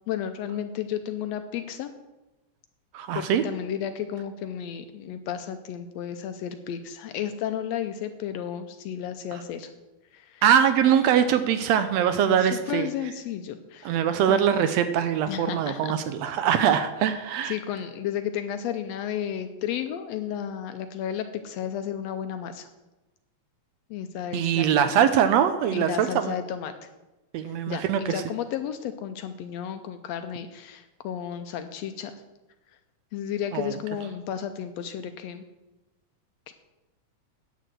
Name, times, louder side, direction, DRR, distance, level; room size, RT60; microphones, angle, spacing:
voice 1, 0.1-1.9 3.1-9.7 10.1-10.4 12.2-14.4 15.3-15.9 17.5-22.7 23.9-24.8 25.7-26.7 27.4-32.2 33.1-35.5 36.5-36.6, left 9 dB, 75° left, 9 dB, 1.6 m, -33 dB
voice 2, 2.9-3.4 10.4-12.9 13.8-17.6 24.3-26.3 27.3-28.2 33.5-33.7, right 9 dB, 75° right, 10 dB, 1.6 m, -22 dB
9.3 x 6.7 x 7.6 m, 1.1 s
omnidirectional pair, 3.3 m